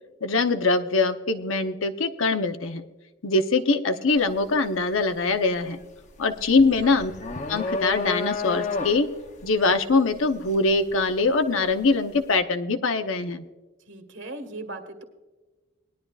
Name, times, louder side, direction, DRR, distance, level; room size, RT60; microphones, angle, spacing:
voice 1, 0.2-2.8 3.2-5.8 6.2-7.1 7.5-9.1 9.4-13.4, left 3 dB, 80° left, 8 dB, 0.9 m, -23 dB
sound 1, 4.2-4.4 4.8-11.8, left 3 dB, 35° left, 0.8 m, -32 dB
voice 2, 13.9-15.0, right 2 dB, 65° right, 7 dB, 1.6 m, -38 dB
19.5 x 11.5 x 2.4 m, 1.2 s
head